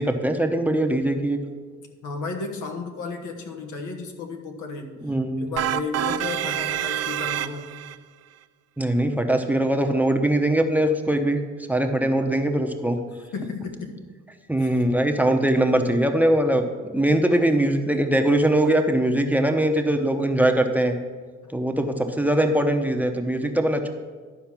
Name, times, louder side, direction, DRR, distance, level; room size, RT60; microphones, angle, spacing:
voice 1, 0.0-1.4 5.0-5.5 8.8-11.4 11.7-13.0 14.5-21.0 21.5-23.9, right 1 dB, 5° right, 4 dB, 0.8 m, -21 dB
voice 2, 2.0-7.7 13.3-14.0 14.6-14.7, left 4 dB, 85° left, 3 dB, 1.4 m, -33 dB
sound 1, 5.6-8.0, right 12 dB, 55° right, 0.4 m, -27 dB
12.0 x 4.6 x 6.0 m, 1.5 s
cardioid pair, 90°, 30 cm